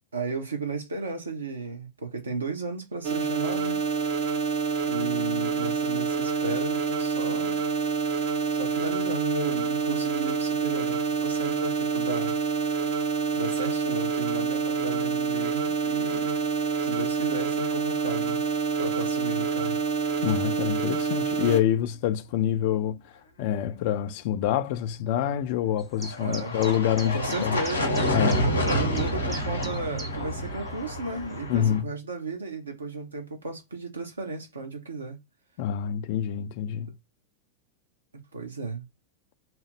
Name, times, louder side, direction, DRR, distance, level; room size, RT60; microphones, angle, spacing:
voice 1, 0.1-3.9 4.9-7.6 8.5-12.4 13.3-16.4 16.8-18.4 18.8-19.8 26.2-26.5 26.9-28.1 28.4-35.2 38.3-38.9, right 3 dB, 75° right, 0.9 m, -34 dB
sound 1, 3.0-21.6, right 5 dB, 50° right, 0.7 m, -27 dB
voice 2, 20.2-23.1 23.4-27.6 28.1-28.5 31.5-31.9 35.6-36.9, left 10 dB, 50° left, 0.4 m, -26 dB
sound 2, 25.8-30.4 30.6-30.7 31.3-31.4, right 2 dB, 15° right, 0.6 m, -41 dB
sound 3, 26.0-31.8, equal, 80° left, 0.8 m, -28 dB
2.9 x 2.0 x 3.3 m
figure-of-eight pair, 90°, 0 cm